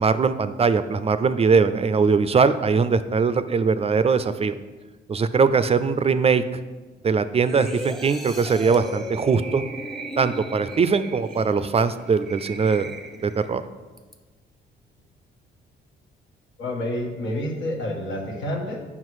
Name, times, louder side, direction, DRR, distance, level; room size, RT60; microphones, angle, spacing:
voice 1, 0.0-4.5 5.1-6.4 7.0-9.6 10.2-12.9 13.2-13.6, right 5 dB, 30° right, 12 dB, 0.4 m, -21 dB
sound 1, 7.4-13.5 14.0-14.1, right 1 dB, ahead, 0.8 m, -36 dB
voice 2, 16.6-18.8, left 1 dB, 80° left, 0 dB, 1.5 m, -29 dB
7.6 x 5.7 x 4.7 m, 1.3 s
cardioid pair, 90°, 20 cm